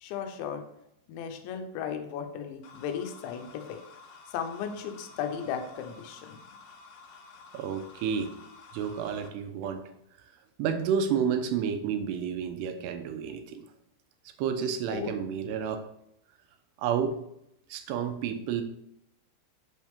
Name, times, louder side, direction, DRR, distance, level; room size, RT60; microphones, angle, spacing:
voice 1, 0.0-0.6 1.1-3.8 4.3-6.4 14.9-15.1, left 7 dB, 90° left, 6 dB, 3.1 m, -35 dB
sound 1, 2.6-9.3, left 4 dB, 65° left, 2.4 m, -51 dB
voice 2, 7.5-8.3 8.7-9.8 10.6-13.7 14.4-15.8 16.8-17.2 17.7-18.6, right 7 dB, 80° right, 8 dB, 2.7 m, -30 dB
8.3 x 6.4 x 3.5 m, 0.77 s
omnidirectional pair, 5.1 m